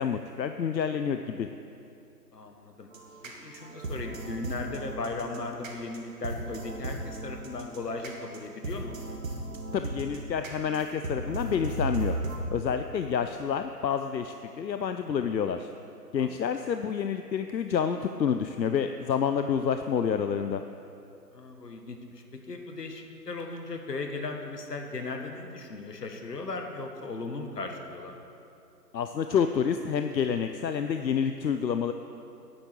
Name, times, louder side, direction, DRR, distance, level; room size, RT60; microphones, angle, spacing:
voice 1, 0.0-1.5 9.7-12.2 12.5-15.7 16.1-20.6 28.9-31.9, left 7 dB, 90° left, 8 dB, 0.7 m, -28 dB
voice 2, 2.3-2.9 3.2-9.0 16.2-16.5 19.4-19.6 21.3-28.1, left 3 dB, 70° left, 4 dB, 1.6 m, -37 dB
sound 1, 2.9-12.4, right 2 dB, 50° right, 2.0 m, -36 dB
9.6 x 7.3 x 7.6 m, 2.7 s
figure-of-eight pair, 165°, 50 cm